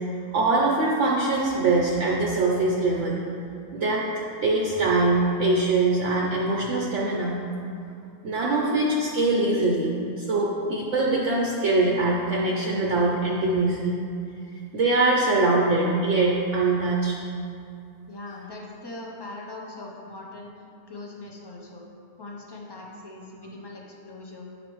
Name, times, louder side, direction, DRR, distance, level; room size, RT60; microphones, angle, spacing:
voice 1, 0.3-3.2 3.7-4.1 4.4-7.3 8.2-14.0 14.7-17.1, right 2 dB, 60° right, -4 dB, 0.9 m, -23 dB
voice 2, 18.1-20.5 20.9-21.8 22.2-24.5, left 2 dB, 30° left, -2 dB, 0.4 m, -40 dB
9.2 x 5.2 x 3.0 m, 2.5 s
omnidirectional pair, 1.6 m